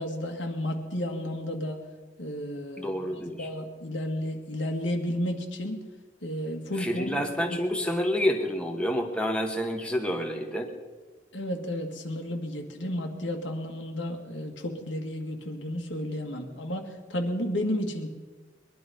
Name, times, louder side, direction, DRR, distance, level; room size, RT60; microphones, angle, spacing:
voice 1, 0.0-1.8 2.2-5.8 6.2-7.1 7.5-7.6 11.3-18.1, left 1 dB, 85° left, 3 dB, 2.2 m, -32 dB
voice 2, 2.8-3.5 6.8-10.7, equal, 5° left, 2 dB, 1.4 m, -28 dB
21.5 x 11.5 x 5.4 m, 1.3 s
head